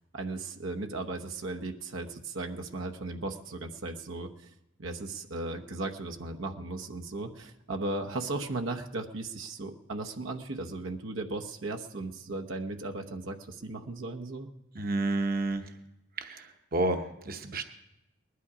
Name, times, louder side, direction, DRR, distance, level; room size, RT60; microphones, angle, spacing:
voice 1, 0.1-4.5 4.8-14.5, right 2 dB, 90° right, 3 dB, 1.1 m, -36 dB
voice 2, 14.7-15.8 16.2-17.6, right 2 dB, 50° right, 6 dB, 0.9 m, -30 dB
20.0 x 11.5 x 5.0 m, 0.91 s
head